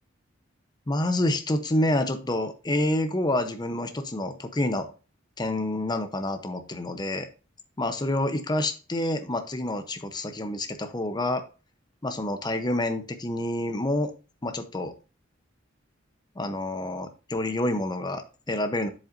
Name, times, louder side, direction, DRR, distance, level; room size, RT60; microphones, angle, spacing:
voice 1, 0.9-4.9 5.4-7.3 7.8-11.4 12.0-14.1 14.4-14.9 16.4-18.9, left 1 dB, 20° left, 8 dB, 0.7 m, -28 dB
7.8 x 7.4 x 2.6 m, 0.33 s
head